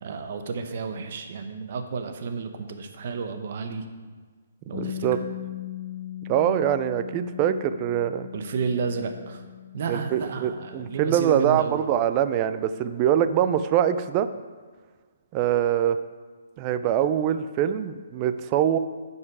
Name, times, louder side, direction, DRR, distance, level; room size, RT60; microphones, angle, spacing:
voice 1, 0.0-3.8 4.7-5.3 8.3-9.4 9.7-11.8, right 5 dB, 50° right, 6 dB, 0.9 m, -31 dB
Bass guitar, 4.7-11.0, left 12 dB, 70° left, 1.0 m, -39 dB
voice 2, 4.8-5.2 6.3-8.3 9.9-14.3 15.3-16.0 16.6-18.8, right 10 dB, 30° right, 11 dB, 0.4 m, -24 dB
9.7 x 5.5 x 4.7 m, 1.5 s
hypercardioid pair, 155°, 0 cm